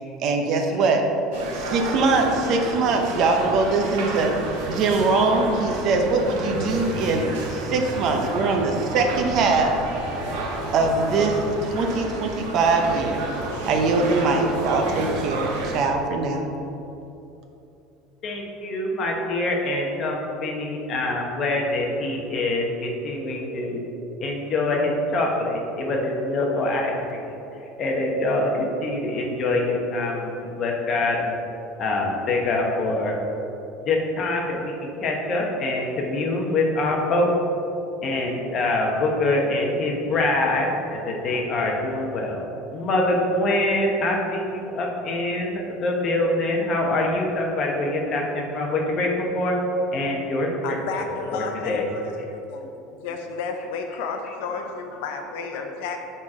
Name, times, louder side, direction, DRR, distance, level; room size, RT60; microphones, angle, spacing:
voice 1, 0.2-1.0 1.5-4.3 4.6-7.2 7.5-9.7 10.7-13.2 13.7-16.5, right 3 dB, 40° right, 3 dB, 0.7 m, -22 dB
voice 2, 0.7-1.1 1.3-1.5 2.2-2.7 3.0-3.5 4.2-4.8 5.3-6.2 6.6-7.4 8.2-8.3 8.6-9.0 9.7-10.0 11.6-11.8 12.2-13.0 13.5-13.6 14.3-14.9 15.7-15.8 18.2-23.8 24.2-27.4 27.8-31.3 31.8-33.1 33.8-37.3 38.0-42.4 42.7-49.5 49.9-52.3 53.6-55.1 55.6-56.0, left 2 dB, 30° left, 0 dB, 1.0 m, -26 dB
sound 1, 1.3-15.8, right 2 dB, 85° right, 1.3 m, -31 dB
voice 3, 50.6-52.1 52.5-52.7 53.0-56.0, left 5 dB, 75° left, 4 dB, 0.7 m, -32 dB
7.2 x 4.3 x 4.8 m, 2.9 s
cardioid pair, 170°, 0 cm